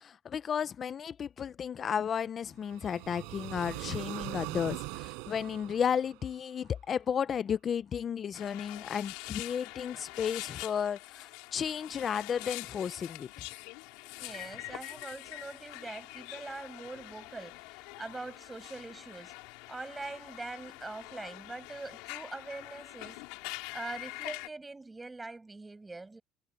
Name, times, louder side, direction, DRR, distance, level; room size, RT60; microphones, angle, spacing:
voice 1, 0.0-13.3, left 7 dB, 35° left, 0.6 m, -33 dB
sound 1, 2.6-6.7, right 32 dB, 85° right, 5.1 m, -41 dB
sound 2, 8.3-24.5, left 25 dB, 85° left, 4.5 m, -45 dB
voice 2, 14.2-19.3 19.7-23.2 23.7-26.2, right 3 dB, 10° right, 7.1 m, -43 dB
cardioid pair, 135°, 0 cm